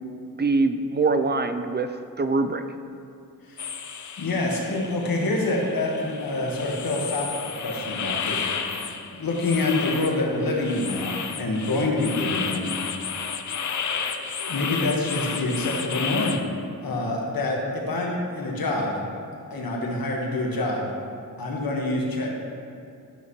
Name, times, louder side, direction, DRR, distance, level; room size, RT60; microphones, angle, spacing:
voice 1, 0.4-2.6, right 3 dB, 30° right, 9 dB, 0.5 m, -23 dB
sound 1, 3.6-16.4, left 6 dB, 50° left, 0.7 m, -32 dB
voice 2, 4.2-7.3 7.6-8.5 8.7-8.8 9.1-12.7 13.9-14.0 14.4-16.4 16.8-19.0 19.5-20.9 21.4-22.3, left 2 dB, 70° left, -1 dB, 1.6 m, -26 dB
12.0 x 5.7 x 3.1 m, 2.5 s
cardioid pair, 60°, 37 cm